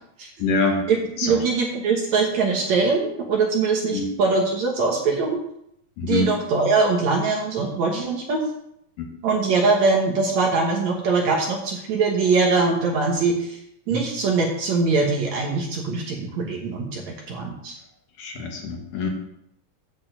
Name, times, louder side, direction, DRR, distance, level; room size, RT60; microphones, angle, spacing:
voice 1, 0.4-0.9 1.2-1.5 3.9-4.1 6.0-6.3 9.0-9.1 13.9-14.0 18.2-19.1, left 3 dB, 65° left, 1 dB, 2.7 m, -25 dB
voice 2, 1.2-5.4 6.0-8.4 9.2-13.6 13.9-17.8, right 4 dB, 60° right, 0 dB, 2.2 m, -22 dB
8.8 x 5.5 x 7.6 m, 0.74 s
omnidirectional pair, 4.3 m